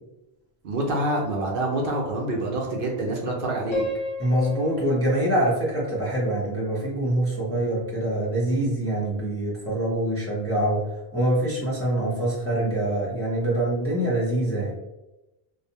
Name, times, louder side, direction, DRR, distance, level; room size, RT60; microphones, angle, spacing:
voice 1, 0.6-3.8, right 1 dB, 65° right, -1 dB, 0.7 m, -26 dB
Piano, 3.7-6.7, left 1 dB, 60° left, 0.8 m, -34 dB
voice 2, 4.2-10.8 11.1-14.7, right 1 dB, 15° left, -7 dB, 0.5 m, -24 dB
2.6 x 2.0 x 2.7 m, 0.99 s
omnidirectional pair, 1.0 m